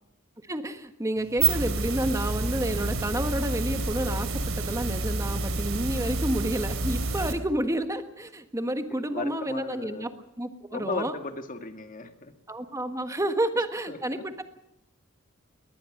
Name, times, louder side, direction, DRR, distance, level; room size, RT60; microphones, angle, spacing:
voice 1, 0.4-10.1 10.4-11.2 12.5-14.4, right 1 dB, 15° right, 8 dB, 1.4 m, -30 dB
sound 1, 1.2-7.3, right 3 dB, 70° right, 3.3 m, -29 dB
voice 2, 8.9-10.1 10.7-12.3 13.9-14.0, left 3 dB, 40° left, 7 dB, 1.9 m, -36 dB
22.0 x 19.0 x 6.5 m, 0.83 s
head